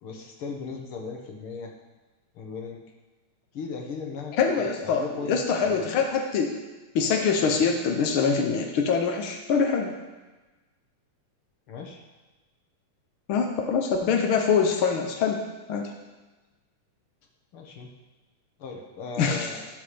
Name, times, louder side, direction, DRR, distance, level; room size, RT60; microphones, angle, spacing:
voice 1, 0.0-1.7 2.3-2.8 3.5-5.4 5.6-5.9 11.7-12.0 17.5-17.9 18.6-19.7, left 4 dB, 50° left, 1 dB, 1.8 m, -37 dB
voice 2, 4.4-6.6 6.9-9.9 13.3-15.4 15.7-15.9 19.2-19.5, left 5 dB, 80° left, 2 dB, 1.2 m, -24 dB
13.5 x 5.6 x 6.9 m, 1.2 s
omnidirectional pair, 3.8 m